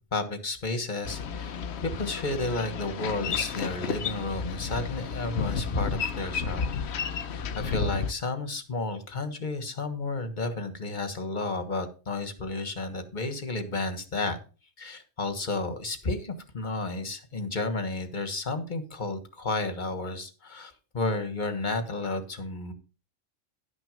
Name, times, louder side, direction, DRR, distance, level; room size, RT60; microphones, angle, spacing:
voice 1, 0.1-6.7 7.5-14.4 14.8-22.7, left 2 dB, 35° left, 9 dB, 1.5 m, -32 dB
Boat Water vehicle, 1.0-8.1, left 5 dB, 60° left, 1.0 m, -32 dB
11.5 x 6.2 x 5.2 m, 0.35 s
omnidirectional pair, 1.4 m